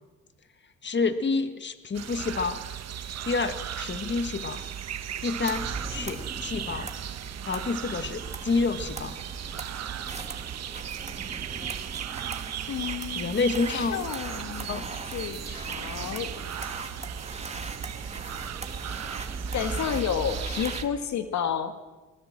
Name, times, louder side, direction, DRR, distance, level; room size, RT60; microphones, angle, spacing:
voice 1, 0.8-2.6 3.2-4.6 5.2-6.9 7.5-9.1 13.2-14.0 14.7-14.9, left 4 dB, 35° left, 10 dB, 1.9 m, -28 dB
sound 1, 1.9-20.8, right 10 dB, 60° right, 1.3 m, -37 dB
sound 2, 5.5-20.9, right 3 dB, 20° right, 2.2 m, -39 dB
voice 2, 12.7-13.4 13.7-16.3 19.5-21.7, left 8 dB, 70° left, 9 dB, 1.7 m, -31 dB
23.5 x 21.5 x 7.5 m, 1.2 s
cardioid pair, 90°, 30 cm